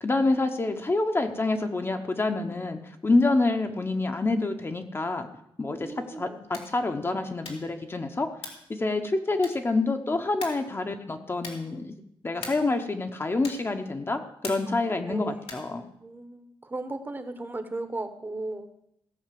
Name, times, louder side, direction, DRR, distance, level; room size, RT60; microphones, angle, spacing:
voice 1, 0.0-5.3 5.6-5.9 6.2-8.3 8.7-11.9 12.2-15.8, left 2 dB, 25° left, 5 dB, 0.9 m, -27 dB
voice 2, 5.7-6.4 14.7-15.6 16.0-18.7, right 2 dB, 20° right, 8 dB, 1.1 m, -37 dB
sound 1, 6.4-6.8 7.4-7.8 8.4-8.7 9.4-9.8 10.4-10.7 11.4-11.7 12.4-12.8 13.4-13.8 14.4-14.8 15.4-15.8, left 4 dB, 90° left, 2.6 m, -41 dB
16.5 x 5.9 x 7.6 m, 0.76 s
wide cardioid pair, 155°, 10 cm